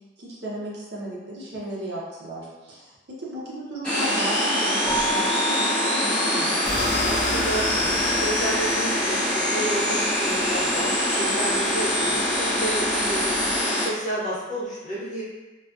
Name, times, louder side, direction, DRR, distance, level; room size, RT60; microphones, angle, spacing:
voice 1, 0.2-2.9 3.2-6.6, right 1 dB, 60° right, -5 dB, 0.6 m, -35 dB
sound 1, 3.8-13.8, left 1 dB, 5° left, 0.8 m, -24 dB
Keyboard (musical), 4.8-7.3, right 2 dB, 15° right, 0.4 m, -31 dB
sound 2, 6.7-13.6, left 2 dB, 60° left, 0.4 m, -36 dB
voice 2, 7.0-13.2 13.5-15.2, right 1 dB, 40° left, -10 dB, 0.9 m, -31 dB
2.4 x 2.3 x 2.3 m, 1.1 s
head